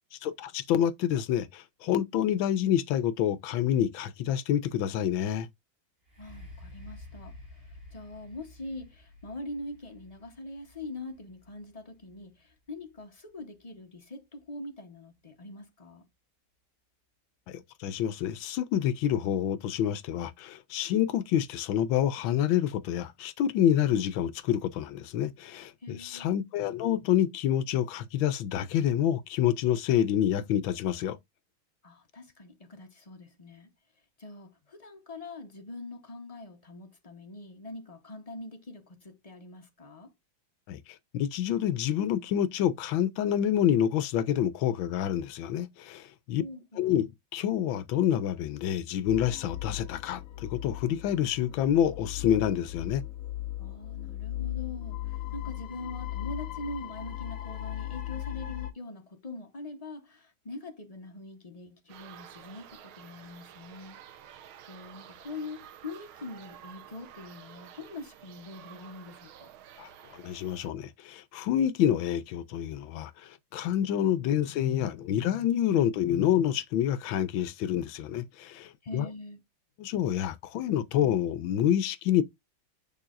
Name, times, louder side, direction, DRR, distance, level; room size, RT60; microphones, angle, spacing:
voice 1, 0.1-5.5 17.5-31.2 40.7-40.8 41.1-46.4 46.8-53.0 69.8-79.1 79.8-82.2, left 10 dB, 75° left, 1.4 m, -28 dB
sound 1, 6.0-13.8 14.4-14.5, left 2 dB, 45° right, 3.3 m, -51 dB
voice 2, 6.2-16.1 25.8-26.3 31.8-33.7 34.2-40.1 46.4-46.9 53.6-64.0 64.3-69.5 78.8-79.4, left 2 dB, 35° left, 0.6 m, -43 dB
sound 2, 49.1-58.7, left 14 dB, 50° left, 1.1 m, -37 dB
sound 3, 61.9-70.7, right 10 dB, 85° right, 1.7 m, -51 dB
6.8 x 5.5 x 2.5 m
omnidirectional pair, 2.2 m